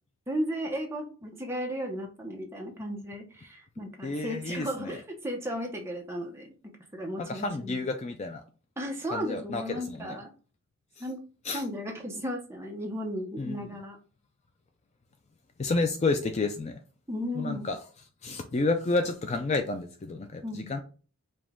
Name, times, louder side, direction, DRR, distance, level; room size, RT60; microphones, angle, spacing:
voice 1, 0.3-6.5 6.9-7.8 8.8-10.3 11.0-11.2 11.5-14.0 17.1-17.7 20.4-20.7, equal, 10° right, 0.8 m, -35 dB
voice 2, 4.0-5.0 7.2-8.4 9.1-10.2 11.4-11.6 13.4-13.6 15.6-16.8 17.4-17.8 18.2-20.8, left 3 dB, 30° left, 0.3 m, -30 dB
5.0 x 2.3 x 3.6 m
head